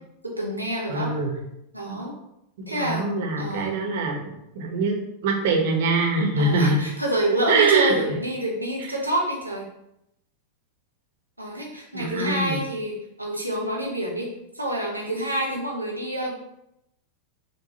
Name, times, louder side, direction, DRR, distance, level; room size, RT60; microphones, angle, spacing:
voice 1, 0.2-1.1 1.7-2.1 2.7-3.1 3.4-3.8 6.4-9.7 11.4-16.4, right 1 dB, 85° right, -2 dB, 0.8 m, -28 dB
voice 2, 0.9-1.4 1.9-2.0 2.7-4.2 4.5-5.0 5.2-6.8 7.5-7.9 11.9-12.6, right 3 dB, 55° right, 1 dB, 0.7 m, -23 dB
4.6 x 2.2 x 2.8 m, 0.82 s
figure-of-eight pair, 90°, 0 cm